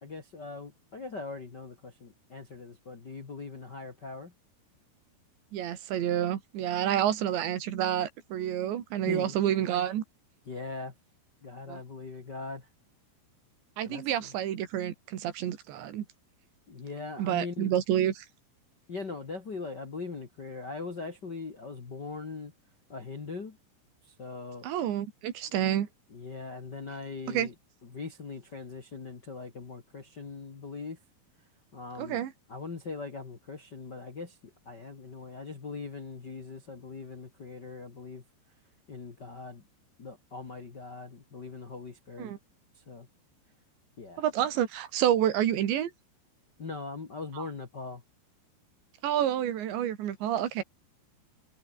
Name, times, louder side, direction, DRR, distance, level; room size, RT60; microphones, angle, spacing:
voice 1, 0.0-4.3 9.1-9.4 10.5-10.9 11.4-12.7 13.8-14.3 16.7-17.7 18.9-22.5 22.9-23.6 24.0-24.7 26.1-27.5 27.9-31.0 31.7-32.2 32.5-38.2 38.9-39.6 40.0-42.3 42.7-43.1 44.0-44.2 46.6-48.0, left 4 dB, 35° left, 1.9 m, -41 dB
voice 2, 5.5-10.0 11.7-11.8 13.8-16.1 17.2-18.3 24.6-25.9 27.3-27.5 32.0-32.3 42.2-42.4 44.2-45.9 47.4-47.5 49.0-50.6, right 11 dB, 85° right, 4.5 m, -29 dB
omnidirectional pair, 5.0 m